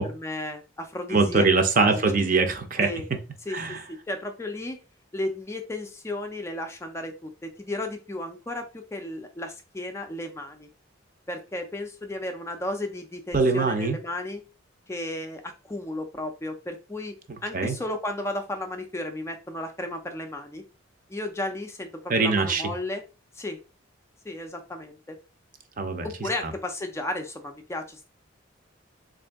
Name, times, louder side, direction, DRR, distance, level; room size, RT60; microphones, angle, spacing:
voice 1, 0.1-1.5 1.8-2.0 2.8-3.0 3.5-3.8 4.1-4.8 5.1-10.7 11.3-14.4 14.9-17.1 17.4-20.6 21.1-23.0 23.3-23.6 24.2-25.2 26.0-28.1, left 1 dB, 15° left, 5 dB, 0.3 m, -34 dB
voice 2, 1.1-2.9 3.5-3.8 13.3-14.0 17.5-17.8 22.1-22.6 25.8-26.5, right 3 dB, 45° right, 7 dB, 0.5 m, -23 dB
3.6 x 2.6 x 3.4 m, 0.32 s
head